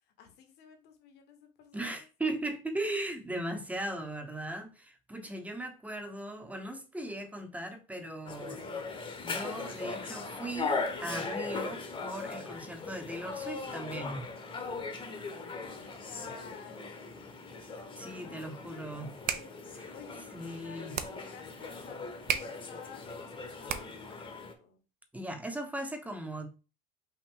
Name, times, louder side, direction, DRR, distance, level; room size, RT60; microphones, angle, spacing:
voice 1, 0.2-2.1 15.2-16.8 18.1-19.5 19.9-22.0 22.3-24.8, left 7 dB, 60° left, 1.3 m, -53 dB
voice 2, 1.7-8.7 9.2-14.3 18.0-19.1 19.7-19.9 20.3-20.9 25.1-26.5, right 1 dB, 5° right, 0.9 m, -38 dB
sound 1, 8.3-24.5, left 4 dB, 25° left, 1.0 m, -39 dB
sound 2, 19.0-24.2, right 9 dB, 45° right, 0.6 m, -38 dB
5.6 x 2.5 x 3.7 m
supercardioid pair, 100°, 20 cm